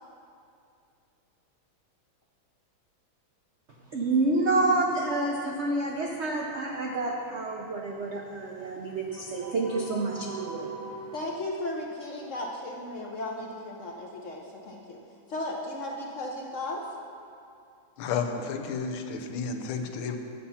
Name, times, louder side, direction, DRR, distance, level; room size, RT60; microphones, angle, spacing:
voice 1, 3.9-11.2, right 2 dB, 70° right, -1 dB, 0.6 m, -28 dB
voice 2, 11.1-15.0 15.3-16.9, left 1 dB, 65° left, -1 dB, 0.7 m, -35 dB
voice 3, 18.0-20.2, left 5 dB, 85° left, 5 dB, 1.5 m, -32 dB
9.7 x 7.0 x 5.6 m, 2.5 s
omnidirectional pair, 2.2 m